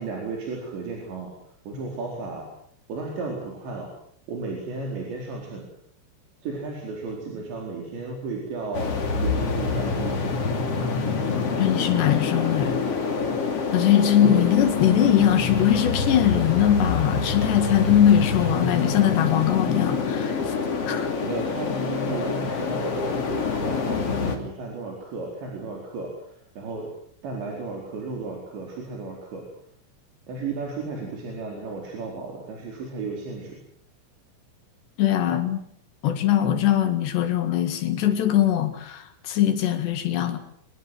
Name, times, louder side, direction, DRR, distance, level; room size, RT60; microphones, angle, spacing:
voice 1, 0.0-1.3 1.7-2.5 2.9-3.9 4.3-5.7 6.4-10.4 10.7-10.9 14.2-14.5 21.2-26.9 27.2-29.4 30.3-33.6, right 3 dB, 60° right, 0 dB, 6.5 m, -34 dB
sound 1, 8.7-24.4, left 5 dB, 35° left, 3.2 m, -26 dB
voice 2, 11.6-12.8 13.7-20.5 20.9-21.1 22.7-22.8 35.0-35.6 36.0-40.4, left 10 dB, 60° left, 9 dB, 3.8 m, -21 dB
25.5 x 20.5 x 7.9 m, 0.66 s
omnidirectional pair, 5.9 m